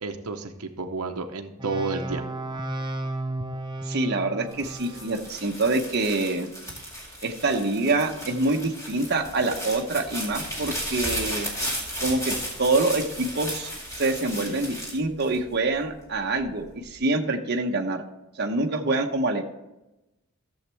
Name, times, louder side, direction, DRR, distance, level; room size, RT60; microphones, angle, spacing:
voice 1, 0.0-2.3, right 3 dB, 80° right, 6 dB, 0.8 m, -31 dB
sound 1, 1.6-5.2, right 1 dB, 20° right, 0.6 m, -33 dB
voice 2, 3.8-6.5 7.2-11.5 12.0-13.7 14.0-18.0 18.4-19.4, right 2 dB, 45° right, 3 dB, 0.9 m, -26 dB
sound 2, 4.5-15.9 16.4-17.0, equal, 15° left, 2.2 m, -34 dB
14.0 x 7.3 x 3.4 m, 0.97 s
head